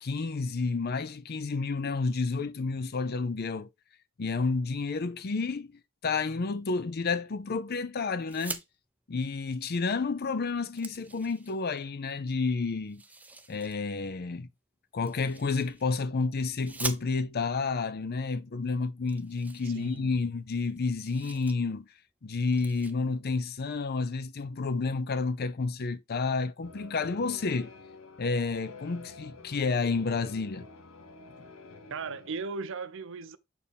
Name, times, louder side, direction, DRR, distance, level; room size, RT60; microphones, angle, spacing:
voice 1, 0.0-3.7 4.2-5.7 6.0-8.6 9.1-13.0 13.5-14.5 14.9-21.8 22.2-27.7 28.2-30.7, left 4 dB, 50° left, 0.5 m, -30 dB
sound 1, 8.2-8.7 10.0-10.1 10.4-11.8 12.9-13.8 15.0-16.0 16.6-17.5 18.3-18.4 18.7-18.8 19.1-20.4 20.7-21.6 21.9-22.1 22.5-22.9, right 3 dB, 5° right, 0.5 m, -42 dB
voice 2, 19.6-20.1 31.9-33.4, right 4 dB, 65° right, 0.6 m, -37 dB
sound 2, 26.6-32.3, left 3 dB, 80° left, 1.1 m, -49 dB
6.9 x 4.4 x 3.4 m
head